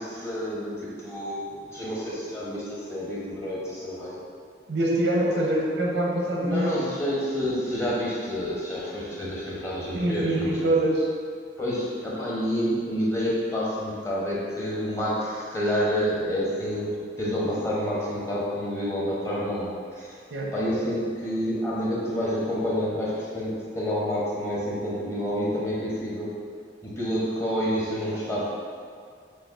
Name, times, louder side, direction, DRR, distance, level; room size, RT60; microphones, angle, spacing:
voice 1, 0.0-4.2 6.4-10.7 11.6-16.9 17.2-20.2 20.5-26.3 26.8-28.4, equal, 15° left, -6 dB, 0.7 m, -28 dB
voice 2, 4.7-6.9 9.9-11.1 20.3-20.5, right 1 dB, 90° right, -2 dB, 0.7 m, -24 dB
6.4 x 2.4 x 2.4 m, 2.2 s
head